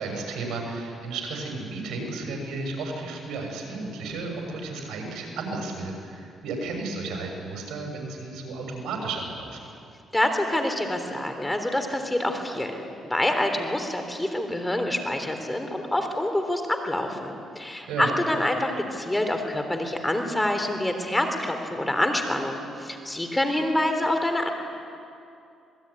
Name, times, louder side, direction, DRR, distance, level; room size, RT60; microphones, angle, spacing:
voice 1, 0.0-9.6 17.9-18.1, right 3 dB, 80° right, 2 dB, 6.8 m, -33 dB
voice 2, 10.1-24.5, left 1 dB, 10° left, 5 dB, 3.5 m, -26 dB
27.0 x 20.5 x 9.9 m, 2.5 s
cardioid pair, 90°, 0 cm